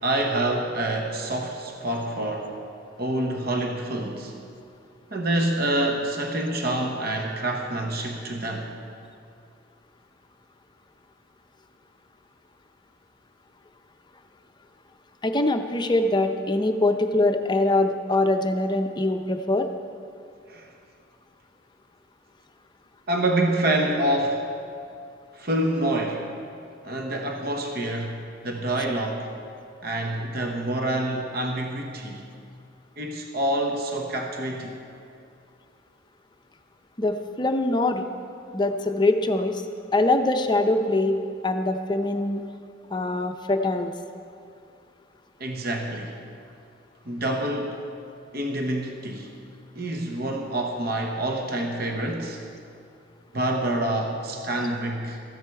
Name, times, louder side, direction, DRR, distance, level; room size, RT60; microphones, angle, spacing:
voice 1, 0.0-2.6 3.0-4.4 5.1-8.7 20.5-20.7 23.1-24.5 25.3-26.3 26.8-29.3 29.8-32.2 33.0-34.8 45.4-46.2 47.0-47.8 48.3-49.3 49.7-52.4 53.3-55.2, right 1 dB, 50° right, 2 dB, 1.0 m, -27 dB
voice 2, 15.2-19.7 37.0-38.1 38.5-39.6 39.9-41.2 41.4-42.4 42.9-43.9, left 2 dB, 20° left, 6 dB, 0.6 m, -23 dB
14.0 x 10.0 x 4.7 m, 2.4 s
head